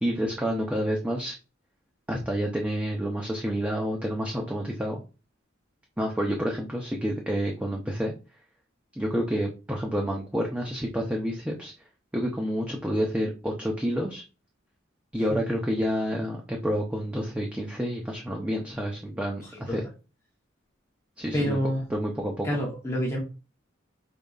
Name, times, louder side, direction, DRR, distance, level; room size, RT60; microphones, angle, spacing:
voice 1, 0.0-1.4 2.1-5.0 6.0-8.1 9.0-11.7 12.1-14.2 15.1-19.9 21.2-21.6 21.9-22.5, equal, 5° right, -1 dB, 0.6 m, -29 dB
voice 2, 19.4-19.9 21.3-21.9 22.4-23.2, equal, 15° left, -3 dB, 1.0 m, -28 dB
5.2 x 4.2 x 2.4 m, 0.32 s
head